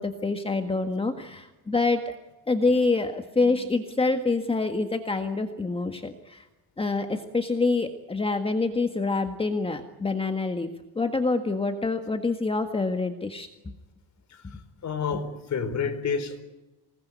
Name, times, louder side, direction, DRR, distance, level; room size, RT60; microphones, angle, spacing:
voice 1, 0.0-2.1 2.5-6.5 6.8-10.7 10.9-13.5, left 3 dB, 15° left, 6 dB, 1.7 m, -26 dB
voice 2, 14.3-16.4, left 5 dB, 45° left, 9 dB, 4.6 m, -30 dB
27.0 x 20.0 x 9.3 m, 1.1 s
cardioid pair, 140°, 40 cm